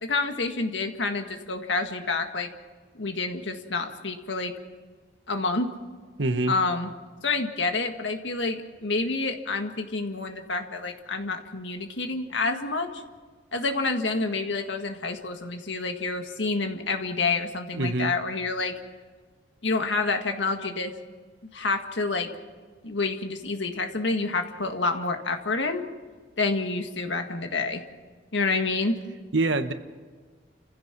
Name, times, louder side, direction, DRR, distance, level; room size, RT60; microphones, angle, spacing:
voice 1, 0.0-2.5 3.0-4.5 5.3-5.7 6.5-6.9 7.2-13.0 13.5-18.7 19.6-20.9 21.4-22.3 22.8-25.8 26.4-27.8 28.3-29.0, left 3 dB, 80° left, 5 dB, 1.8 m, -28 dB
voice 2, 6.2-6.5 17.7-18.1 29.3-29.7, right 2 dB, 85° right, 9 dB, 1.2 m, -25 dB
29.5 x 15.5 x 6.0 m, 1.5 s
head